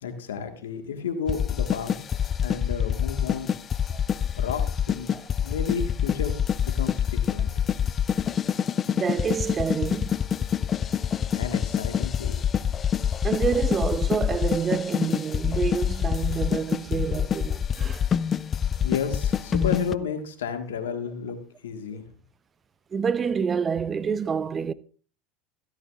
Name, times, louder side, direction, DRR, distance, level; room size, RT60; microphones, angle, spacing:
voice 1, 0.0-3.6 4.4-5.1 5.4-6.3 6.6-7.7 11.4-12.3 18.8-21.4 21.6-22.0, left 6 dB, 85° left, 1.5 m, -32 dB
sound 1, 1.3-19.9, left 8 dB, 35° left, 0.4 m, -26 dB
voice 2, 8.9-10.2 13.2-18.1 22.9-24.7, right 6 dB, 30° right, 0.6 m, -28 dB
13.5 x 12.5 x 2.4 m
hypercardioid pair, 90°, 0 cm